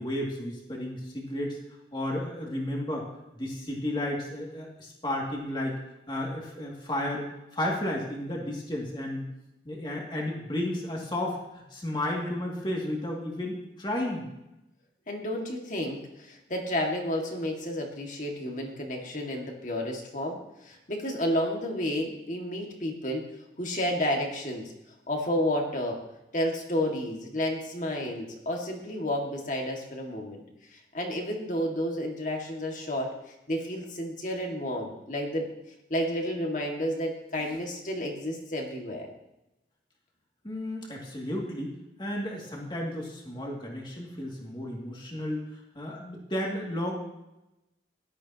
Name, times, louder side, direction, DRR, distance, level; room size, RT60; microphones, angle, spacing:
voice 1, 0.0-1.6 1.9-3.1 3.3-5.8 6.1-9.3 9.6-14.3 40.4-41.7 42.0-45.4 45.7-46.9, left 1 dB, 25° left, -2 dB, 2.4 m, -33 dB
voice 2, 15.1-23.3 23.6-24.7 25.1-26.0 26.3-30.4 30.7-35.5 35.9-39.1, left 1 dB, 45° left, 1 dB, 2.0 m, -31 dB
16.5 x 12.0 x 3.0 m, 0.93 s
head